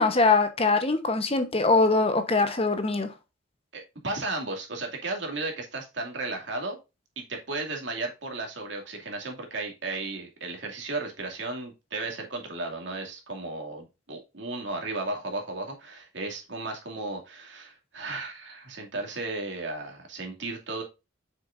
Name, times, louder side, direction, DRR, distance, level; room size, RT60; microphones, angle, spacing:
voice 1, 0.0-3.1, left 3 dB, 30° left, 9 dB, 1.0 m, -22 dB
voice 2, 3.7-6.8 7.2-20.8, right 2 dB, 65° right, 2 dB, 2.4 m, -34 dB
7.7 x 6.4 x 2.6 m, 0.26 s
head